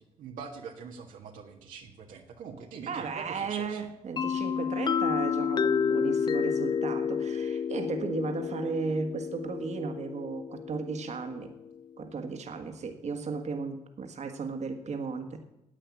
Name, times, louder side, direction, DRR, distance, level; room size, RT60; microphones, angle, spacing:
voice 1, 0.2-3.8, right 5 dB, 80° right, 1 dB, 1.6 m, -43 dB
voice 2, 2.9-11.5 12.0-15.4, right 4 dB, 60° right, 5 dB, 1.7 m, -35 dB
sound 1, 4.2-11.8, left 7 dB, 35° left, 0.4 m, -30 dB
10.0 x 8.5 x 8.5 m, 0.90 s
supercardioid pair, 55°, 13 cm